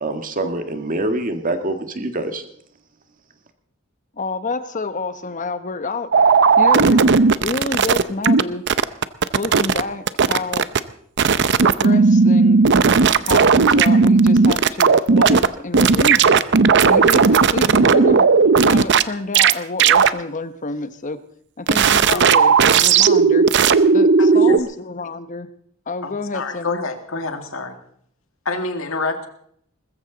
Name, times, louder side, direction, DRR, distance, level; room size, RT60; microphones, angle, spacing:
voice 1, 0.0-2.4, right 2 dB, 40° right, 7 dB, 1.8 m, -25 dB
voice 2, 4.2-6.1 6.6-7.0 7.4-8.6 9.3-10.7 11.6-12.6 13.2-16.4 16.8-18.3 18.6-21.2 21.6-22.5 22.8-23.5 23.9-25.5 25.9-26.8, left 3 dB, 40° left, 11 dB, 1.0 m, -28 dB
sound 1, 6.1-8.4 8.7-9.8 10.1-10.8 11.2-15.5 15.7-19.0 19.3-19.5 19.8-20.1 21.7-24.6, right 5 dB, 60° right, 0.6 m, -14 dB
voice 3, 24.2-24.6 26.0-27.8 28.5-29.3, left 3 dB, 80° left, 6 dB, 2.1 m, -27 dB
20.5 x 14.5 x 4.0 m, 0.66 s
head